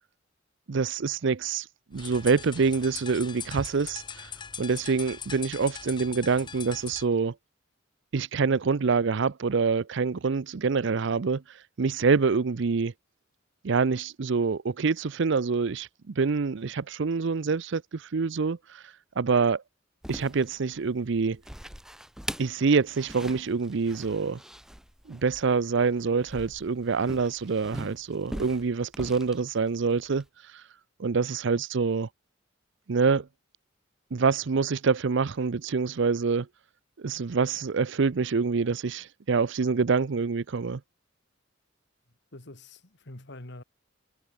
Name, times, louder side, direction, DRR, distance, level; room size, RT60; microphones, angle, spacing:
voice 1, 0.7-1.7 1.9-4.0 4.6-7.3 8.1-11.4 11.8-12.9 13.6-18.8 19.2-19.6 20.1-21.4 22.4-24.4 25.1-30.2 31.0-32.1 32.9-33.3 34.1-36.5 37.0-40.8, right 4 dB, 65° right, 0.6 m, -26 dB
sound 1, 1.9-7.1, left 6 dB, 25° left, 0.8 m, -41 dB
sound 2, 20.0-30.3, equal, 5° right, 2.6 m, -42 dB
voice 2, 42.3-43.6, left 1 dB, 60° left, 2.6 m, -45 dB
head